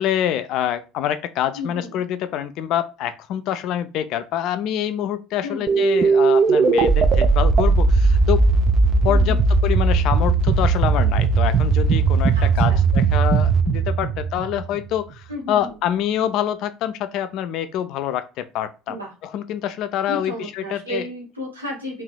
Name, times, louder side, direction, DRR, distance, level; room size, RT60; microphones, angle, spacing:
voice 1, 0.0-8.4 9.0-19.0 19.2-21.1, left 10 dB, 55° left, 0.3 m, -26 dB
voice 2, 1.5-2.0 5.4-5.8 9.1-9.5 12.3-12.8 15.3-15.8 18.9-19.1 20.0-22.0, left 1 dB, 90° right, 1.3 m, -33 dB
sound 1, 5.7-15.0, right 4 dB, 40° right, 0.4 m, -18 dB
3.2 x 2.7 x 2.2 m
figure-of-eight pair, 65°, 0 cm